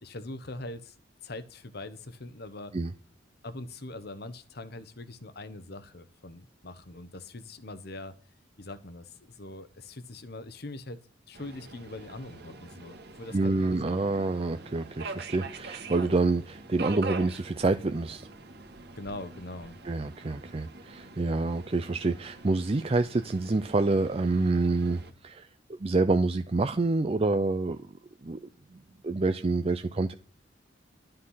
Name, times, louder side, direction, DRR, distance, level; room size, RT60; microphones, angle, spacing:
voice 1, 0.0-0.9 1.2-2.7 3.4-8.1 8.6-11.0 11.3-13.8 19.0-19.8, left 2 dB, 55° left, 12 dB, 1.1 m, -42 dB
Subway metro underground, 11.3-25.1, right 3 dB, 60° right, 1.7 m, -44 dB
voice 2, 13.3-18.3 19.8-25.5 25.8-27.8 28.2-28.4 29.0-30.1, right 3 dB, 30° right, 9 dB, 0.5 m, -27 dB
12.0 x 8.7 x 5.6 m, 0.40 s
head